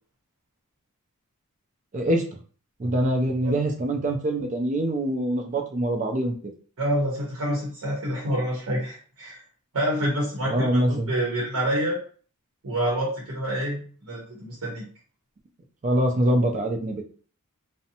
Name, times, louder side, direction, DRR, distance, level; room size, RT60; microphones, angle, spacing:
voice 1, 1.9-2.2 2.8-6.5 10.5-11.1 15.8-17.0, right 1 dB, 35° right, 3 dB, 0.4 m, -24 dB
voice 2, 6.8-9.4 9.7-12.0 12.6-14.8, equal, 80° right, -3 dB, 0.8 m, -27 dB
2.6 x 2.1 x 2.7 m, 0.43 s
head